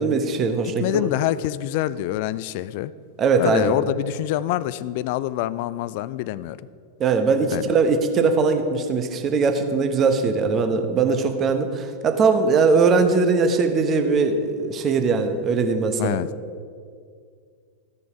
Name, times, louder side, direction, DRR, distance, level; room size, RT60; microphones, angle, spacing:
voice 1, 0.0-1.1 3.2-3.7 7.0-16.2, right 4 dB, 30° right, 7 dB, 0.9 m, -20 dB
voice 2, 0.6-2.9 3.4-6.6 7.5-7.6 16.0-16.3, left 14 dB, 50° left, 17 dB, 0.3 m, -25 dB
14.5 x 6.8 x 5.0 m, 2.2 s
figure-of-eight pair, 90°, 0 cm